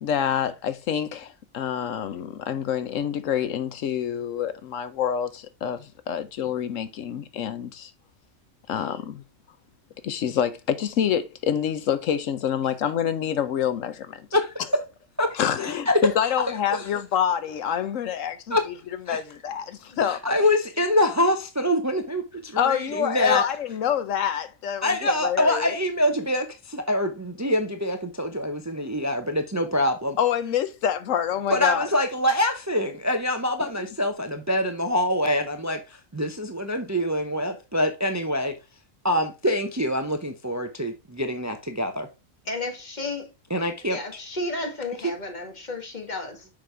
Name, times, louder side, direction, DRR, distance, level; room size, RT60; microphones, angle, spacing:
voice 1, 0.0-7.9 8.7-9.2 10.0-14.3 15.3-18.6 19.1-20.2 22.6-25.7 30.2-31.9, left 9 dB, 80° left, 1.1 m, -27 dB
voice 2, 15.2-16.0 16.7-16.9 18.5-18.6 19.1-19.2 20.0-23.4 24.8-30.2 31.5-38.6 39.0-42.1 43.5-44.0, left 1 dB, 15° right, 0.6 m, -25 dB
voice 3, 42.5-43.3 43.9-46.5, left 2 dB, 35° left, 1.7 m, -32 dB
6.7 x 5.3 x 3.2 m
omnidirectional pair, 1.3 m